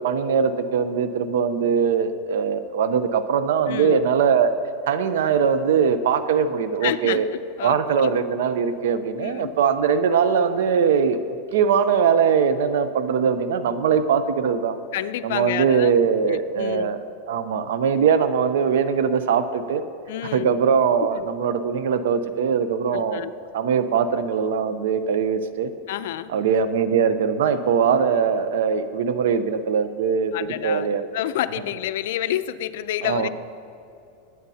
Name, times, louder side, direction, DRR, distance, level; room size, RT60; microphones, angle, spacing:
voice 1, 0.0-4.5 4.9-7.3 7.6-11.2 11.5-14.7 15.2-17.0 17.3-19.8 20.2-23.2 23.5-25.7 26.3-30.3 30.6-31.1 33.0-33.3, right 6 dB, 85° right, 11 dB, 0.7 m, -21 dB
voice 2, 3.7-4.0 6.8-7.2 7.6-8.1 9.2-9.5 14.9-15.9 16.3-16.9 20.1-20.5 21.0-21.3 22.9-23.3 25.9-26.3 30.3-30.9 31.1-33.3, left 12 dB, 70° left, 12 dB, 0.5 m, -29 dB
21.5 x 9.5 x 2.8 m, 2.6 s
supercardioid pair, 155°, 0 cm